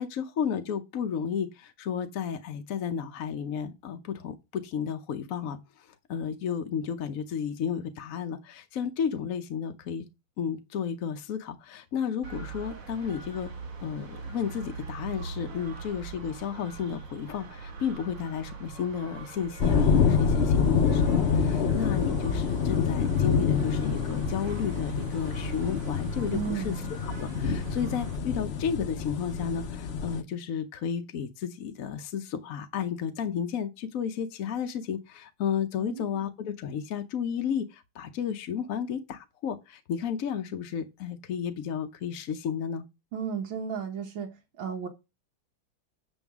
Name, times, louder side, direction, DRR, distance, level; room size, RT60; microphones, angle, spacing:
voice 1, 0.0-10.1 10.4-13.5 13.8-26.7 27.0-42.8, left 7 dB, 60° left, 0.9 m, -32 dB
sound 1, 12.2-28.2, right 4 dB, 90° right, 2.4 m, -43 dB
sound 2, 19.6-30.2, left 6 dB, 85° left, 0.5 m, -26 dB
voice 2, 26.3-26.9 35.8-36.2 43.1-44.9, right 7 dB, 70° right, 2.1 m, -34 dB
7.9 x 7.2 x 3.6 m
omnidirectional pair, 2.3 m